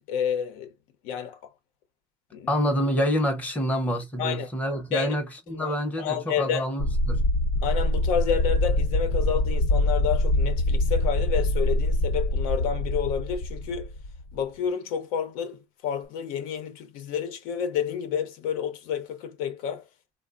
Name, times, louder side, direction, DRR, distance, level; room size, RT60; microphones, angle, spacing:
voice 1, 0.1-0.7 1.0-1.4 2.3-2.5 4.2-4.5 4.9-5.1 5.5-6.7 7.6-13.9 14.3-19.9, left 8 dB, 85° left, 0.8 m, -30 dB
voice 2, 2.5-7.3, equal, 10° left, 0.7 m, -27 dB
sound 1, 6.8-14.4, left 1 dB, 55° left, 0.8 m, -24 dB
3.4 x 2.1 x 2.4 m
cardioid pair, 180°, 14 cm